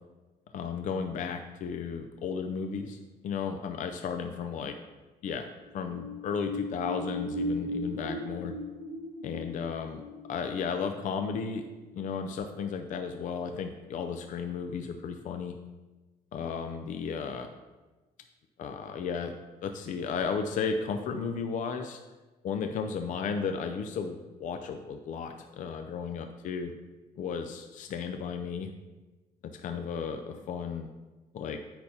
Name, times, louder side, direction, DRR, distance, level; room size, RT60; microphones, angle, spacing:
voice 1, 0.5-3.0 3.2-4.8 5.2-5.5 5.7-8.5 9.2-10.0 10.3-11.6 11.9-15.6 16.3-17.5 18.6-19.3 19.6-22.0 22.4-26.7 27.2-28.7 29.6-30.9 31.3-31.6, left 6 dB, 50° left, 6 dB, 0.5 m, -34 dB
sound 1, 5.7-12.0 12.4-12.5, equal, 50° right, 2.2 m, -37 dB
8.5 x 5.8 x 2.8 m, 1.2 s
cardioid pair, 110°, 17 cm